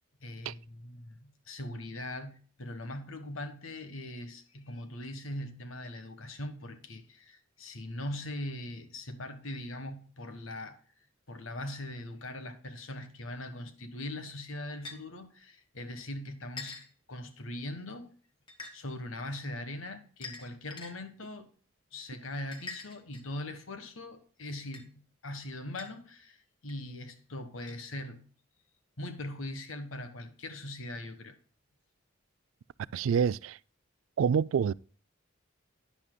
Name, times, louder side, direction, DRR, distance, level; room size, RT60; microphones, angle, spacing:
voice 1, 0.2-10.8 11.3-16.8 17.1-18.1 18.7-21.5 21.9-28.2 29.0-31.3, left 1 dB, 90° left, 1.4 m, -41 dB
sound 1, 14.8-15.0 16.6-16.9 18.5-18.7 20.2-20.9 22.5-23.4 24.7-24.8 25.8-25.9 26.7-26.8 27.7-27.8, left 3 dB, 25° left, 1.4 m, -43 dB
voice 2, 32.9-33.6 34.2-34.7, right 7 dB, 85° right, 0.3 m, -27 dB
11.0 x 10.0 x 2.2 m
head